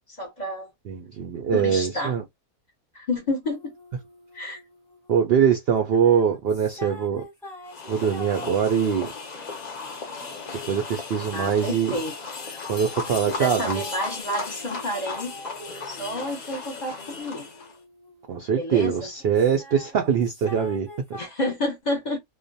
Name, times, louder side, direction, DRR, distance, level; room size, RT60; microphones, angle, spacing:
voice 1, 0.2-0.7 1.5-2.1 2.9-3.7 4.3-4.6 11.3-12.1 13.3-15.3 15.8-17.5 18.6-18.9 21.2-22.2, left 1 dB, 35° left, 0.8 m, -29 dB
voice 2, 0.9-2.2 5.1-7.2 7.9-9.1 10.7-12.0 12.7-13.8 18.3-21.2, right 7 dB, 70° right, 0.5 m, -23 dB
sound 1, 3.4-5.1 5.8-11.4 11.9-18.9 19.2-21.3, left 1 dB, ahead, 0.8 m, -45 dB
sound 2, 7.7-17.8, left 4 dB, 65° left, 0.4 m, -36 dB
2.4 x 2.1 x 2.6 m
omnidirectional pair, 1.5 m